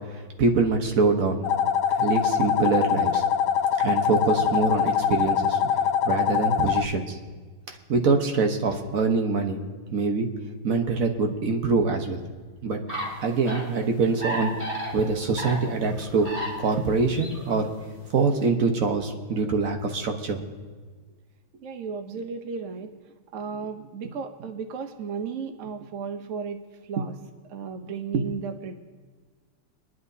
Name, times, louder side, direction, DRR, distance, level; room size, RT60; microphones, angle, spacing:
voice 1, 0.1-1.4 2.0-3.2 3.8-5.6 6.0-7.2 7.7-9.6 9.9-10.3 10.6-12.2 12.6-12.8 13.2-14.6 14.9-16.3 16.6-17.7 18.1-20.4, right 4 dB, 50° right, 4 dB, 1.2 m, -24 dB
sound 1, 1.4-6.9, left 8 dB, 90° left, 0.9 m, -23 dB
sound 2, 12.9-13.7 14.1-16.8 17.1-17.6, equal, 20° right, 3.3 m, -33 dB
voice 2, 21.6-22.9 23.3-27.1 27.5-28.7, right 5 dB, 75° right, 6 dB, 0.7 m, -33 dB
25.5 x 11.0 x 2.7 m, 1.4 s
omnidirectional pair, 2.4 m